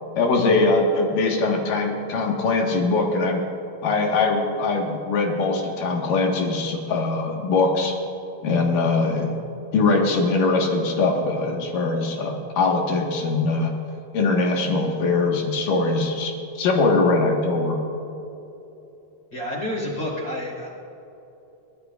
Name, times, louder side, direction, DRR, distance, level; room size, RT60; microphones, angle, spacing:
voice 1, 0.2-3.4 3.8-8.0 8.4-9.3 9.7-13.7 14.1-17.8, left 3 dB, 60° left, 0 dB, 2.5 m, -22 dB
voice 2, 19.3-20.7, left 1 dB, 25° left, -6 dB, 3.7 m, -29 dB
27.5 x 13.5 x 2.5 m, 2.9 s
omnidirectional pair, 5.5 m